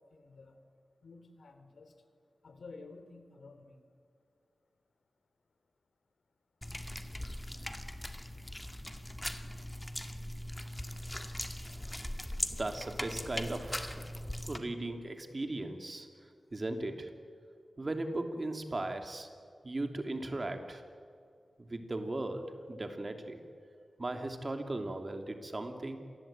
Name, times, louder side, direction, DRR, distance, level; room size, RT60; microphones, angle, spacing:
voice 1, 0.1-0.6 1.0-1.9 2.4-3.8, left 3 dB, 80° left, 8 dB, 3.2 m, -52 dB
sound 1, 6.6-14.6, left 1 dB, 15° left, 2.1 m, -40 dB
voice 2, 12.5-14.0 14.4-16.1 16.5-17.1 17.8-19.3 19.6-20.8 21.6-23.4 24.0-26.0, right 2 dB, 40° right, 5 dB, 3.1 m, -37 dB
27.0 x 20.0 x 8.9 m, 2.2 s
wide cardioid pair, 75°, 0 cm